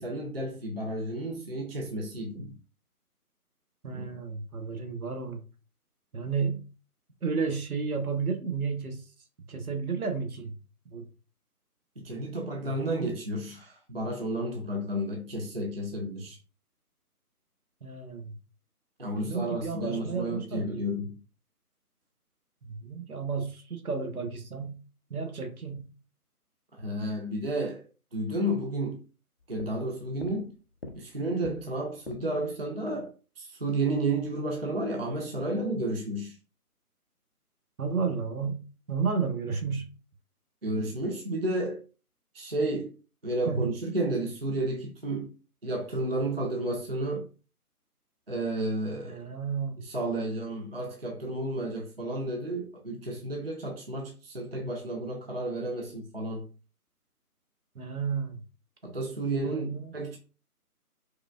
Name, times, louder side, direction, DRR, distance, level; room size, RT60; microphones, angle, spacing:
voice 1, 0.0-2.6 12.0-16.4 19.0-21.2 26.8-27.8 28.1-29.0 29.5-30.5 31.0-36.4 40.6-41.8 42.3-42.9 43.2-45.3 45.6-47.3 48.3-49.2 49.8-56.5 58.8-60.2, right 1 dB, 40° right, 0.4 m, -32 dB
voice 2, 3.8-5.4 6.1-6.7 7.2-9.0 9.5-10.5 10.9-11.1 12.6-13.1 17.8-18.3 19.1-20.9 22.6-24.8 25.1-25.9 37.8-38.6 38.9-39.9 43.5-43.7 49.0-49.8 57.7-58.4 59.4-59.9, right 5 dB, 65° right, 0.9 m, -32 dB
sound 1, 29.4-32.5, left 2 dB, 45° left, 0.5 m, -45 dB
4.7 x 2.3 x 2.3 m
figure-of-eight pair, 150°, 46 cm